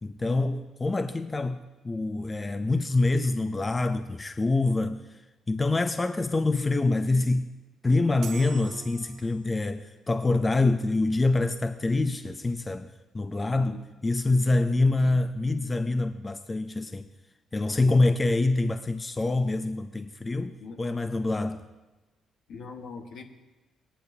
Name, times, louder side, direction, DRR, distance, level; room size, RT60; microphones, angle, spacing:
voice 1, 0.0-5.0 5.5-7.5 7.8-17.1 17.5-21.6, left 2 dB, 25° left, 0.5 m, -26 dB
sound 1, 8.2-9.7, right 7 dB, 70° right, 0.9 m, -43 dB
voice 2, 13.4-13.9 14.8-15.2 20.6-20.8 22.5-23.2, left 4 dB, 75° left, 1.2 m, -43 dB
18.0 x 9.9 x 2.7 m
cardioid pair, 90°, 0 cm